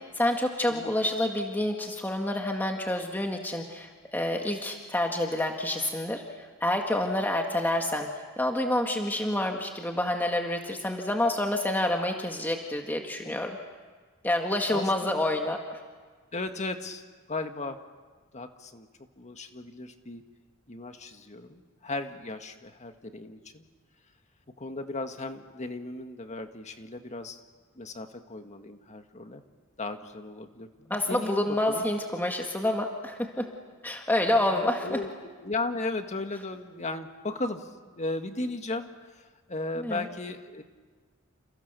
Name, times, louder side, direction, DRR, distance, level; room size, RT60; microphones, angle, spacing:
voice 1, 0.2-8.1 8.4-13.6 14.2-15.8 30.9-33.5 33.8-35.0 39.8-40.1, left 1 dB, 10° left, 2 dB, 1.9 m, -28 dB
voice 2, 14.7-15.2 16.3-17.0 17.3-17.8 18.3-18.9 19.2-20.2 20.7-23.6 24.6-27.4 27.7-29.4 29.8-31.9 34.3-35.1 35.4-40.6, left 2 dB, 35° left, 6 dB, 1.8 m, -36 dB
29.5 x 29.0 x 6.9 m, 1.5 s
head